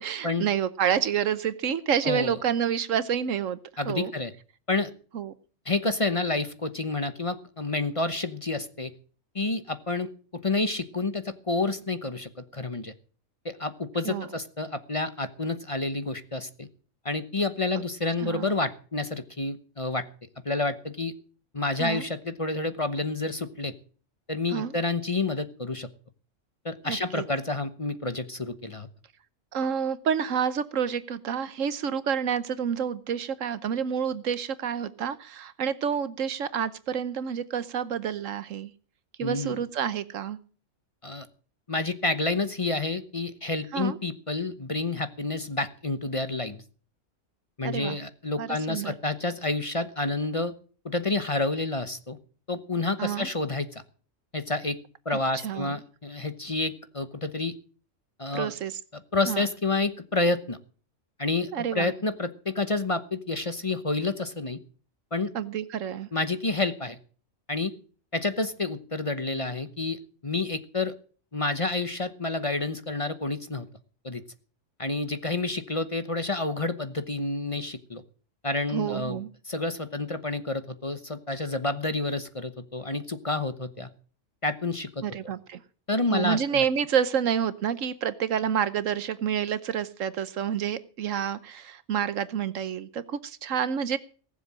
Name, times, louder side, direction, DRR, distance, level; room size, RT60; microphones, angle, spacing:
voice 1, 0.0-3.6 3.8-4.1 5.1-5.3 14.0-14.3 18.2-18.6 21.8-22.0 24.5-24.7 26.8-27.2 29.5-38.7 39.2-40.4 43.7-44.0 47.6-48.0 48.4-48.9 53.0-53.3 55.3-55.7 58.3-58.8 59.3-59.5 61.5-61.9 65.3-66.1 78.7-79.3 85.0-85.6 86.1-94.0, right 8 dB, 80° right, 15 dB, 1.3 m, -28 dB
voice 2, 2.0-2.4 3.8-4.3 4.7-4.9 5.7-8.9 9.3-12.9 13.4-16.7 17.0-20.0 20.4-21.1 21.5-23.7 24.3-25.9 26.6-28.9 39.2-39.6 41.0-41.3 41.7-46.6 47.6-50.5 50.8-52.2 52.5-53.8 54.3-54.8 55.0-57.5 58.2-58.5 59.1-60.6 61.2-64.6 65.1-65.3 66.1-67.0 67.5-67.7 68.1-70.9 71.3-73.7 74.0-74.2 74.8-78.0 78.4-79.2 79.5-83.9 84.4-85.3 85.9-86.6, left 2 dB, 30° left, 11 dB, 1.0 m, -29 dB
19.0 x 7.5 x 7.5 m, 0.42 s
omnidirectional pair, 1.3 m